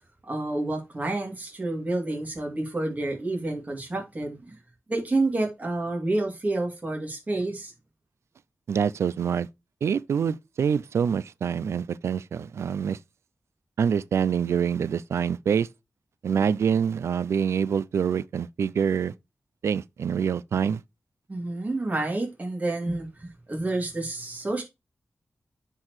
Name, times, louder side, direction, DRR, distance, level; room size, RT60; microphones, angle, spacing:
voice 1, 0.2-4.6 4.9-7.7 21.3-24.6, right 2 dB, 35° right, 2.7 m, -29 dB
voice 2, 8.7-9.5 9.8-13.0 13.8-15.7 16.2-19.1 19.6-20.8, right 7 dB, 85° right, 0.3 m, -25 dB
9.6 x 4.6 x 3.1 m
cardioid pair, 70°, 5 cm